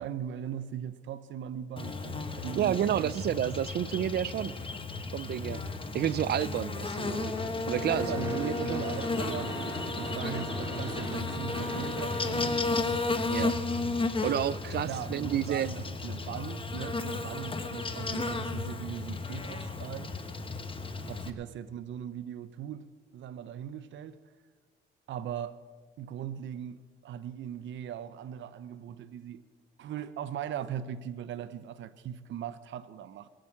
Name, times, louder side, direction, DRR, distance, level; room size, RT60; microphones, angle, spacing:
voice 1, 0.0-3.7 7.9-9.6 9.9-12.6 14.8-20.1 21.1-22.9 23.1-24.2 25.1-25.6 26.0-29.4 29.8-33.3, right 9 dB, 70° right, 0.8 m, -39 dB
Buzz, 1.8-21.3, left 3 dB, 25° left, 1.3 m, -34 dB
voice 2, 2.6-4.6 5.1-5.6 5.9-7.3 7.7-8.8 13.3-13.5 14.2-15.7, right 11 dB, 55° right, 0.4 m, -30 dB
Gunshot gunfire / Fireworks, 7.0-13.3, right 1 dB, 15° right, 3.3 m, -40 dB
22.0 x 7.7 x 7.3 m
cardioid pair, 90°, 20 cm